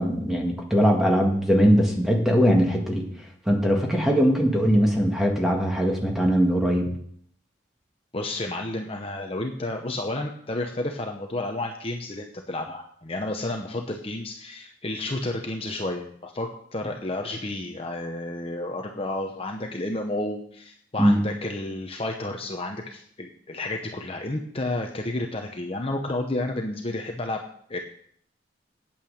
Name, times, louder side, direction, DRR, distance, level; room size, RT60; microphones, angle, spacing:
voice 1, 0.0-3.0 3.5-6.9 21.0-21.2, equal, ahead, 0 dB, 1.9 m, -21 dB
voice 2, 8.1-27.4 27.7-27.8, left 2 dB, 30° left, 3 dB, 0.9 m, -31 dB
8.8 x 8.8 x 6.5 m, 0.64 s
head